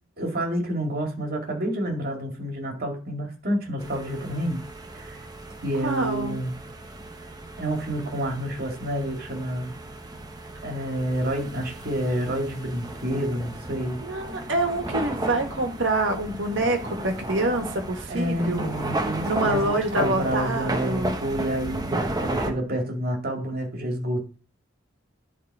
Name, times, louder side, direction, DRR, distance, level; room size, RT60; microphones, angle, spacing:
voice 1, 0.2-4.6 4.9-5.2 5.6-6.5 7.6-9.7 10.6-14.0 18.1-24.4, right 1 dB, 50° right, 2.2 m, -29 dB
sound 1, 3.8-22.5, right 1 dB, 20° right, 0.9 m, -34 dB
voice 2, 5.8-6.3 14.0-18.7 19.2-21.2, right 2 dB, 70° right, 1.6 m, -26 dB
10.5 x 3.7 x 4.7 m
head